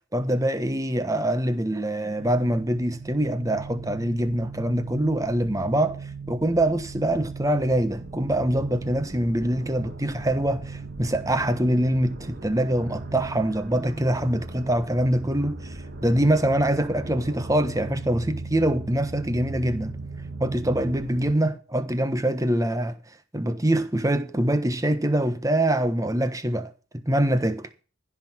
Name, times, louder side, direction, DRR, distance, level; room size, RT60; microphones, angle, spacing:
voice 1, 0.1-6.0 6.3-20.0 20.4-23.0 23.3-27.7, right 1 dB, 15° right, 1.2 m, -24 dB
sound 1, 2.1-21.3, right 3 dB, 50° right, 2.1 m, -38 dB
16.0 x 6.0 x 7.3 m
head